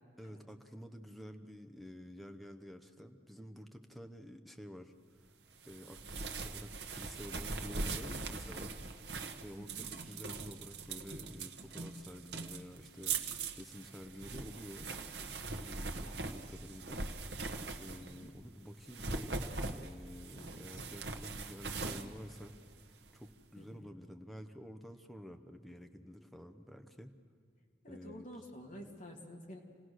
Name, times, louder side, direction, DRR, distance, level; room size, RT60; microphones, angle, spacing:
voice 1, 0.2-4.9 5.7-8.8 9.4-14.9 15.2-17.2 17.8-19.3 19.8-22.5 23.1-27.1 27.9-28.3, equal, ahead, 5 dB, 0.9 m, -50 dB
sound 1, 5.6-18.3 18.8-23.1, right 3 dB, 70° right, 1.2 m, -41 dB
voice 2, 9.6-9.9 17.9-18.3 20.3-20.8 23.6-23.9 27.8-29.6, equal, 45° left, 0 dB, 2.9 m, -51 dB
27.5 x 17.5 x 6.4 m, 2.2 s
head